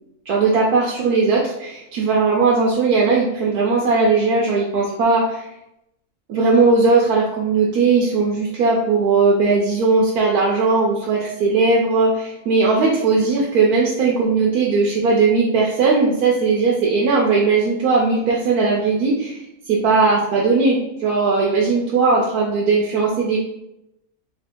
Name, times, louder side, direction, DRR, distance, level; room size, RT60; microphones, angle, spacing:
voice 1, 0.3-5.5 6.3-23.4, right 4 dB, 80° right, -3 dB, 1.1 m, -18 dB
3.2 x 2.5 x 4.3 m, 0.85 s
omnidirectional pair, 1.6 m